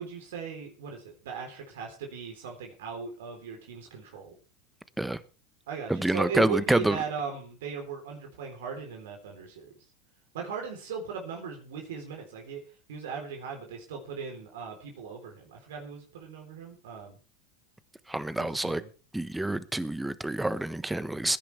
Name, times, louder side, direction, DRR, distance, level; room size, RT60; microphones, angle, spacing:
voice 1, 0.0-4.4 5.7-9.7 10.3-12.6 12.9-17.2 18.4-18.9, right 5 dB, 75° right, 4.0 m, -38 dB
voice 2, 5.9-7.0 18.1-18.8 19.1-21.4, right 1 dB, 5° right, 1.3 m, -27 dB
22.0 x 10.5 x 3.5 m
hypercardioid pair, 95°, 0 cm